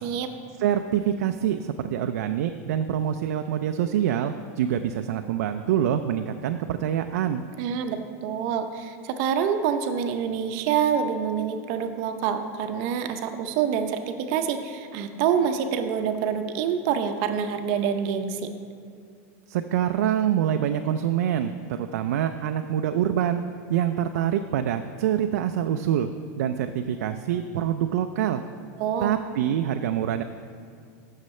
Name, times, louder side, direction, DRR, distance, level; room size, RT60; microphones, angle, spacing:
voice 1, 0.6-7.4 19.5-23.4 23.7-26.1 26.4-28.4 29.0-30.2, right 10 dB, 80° right, 7 dB, 0.4 m, -25 dB
voice 2, 7.6-18.5 28.8-29.2, right 7 dB, 45° right, 7 dB, 0.7 m, -26 dB
14.0 x 6.5 x 3.2 m, 2.2 s
supercardioid pair, 160°, 8 cm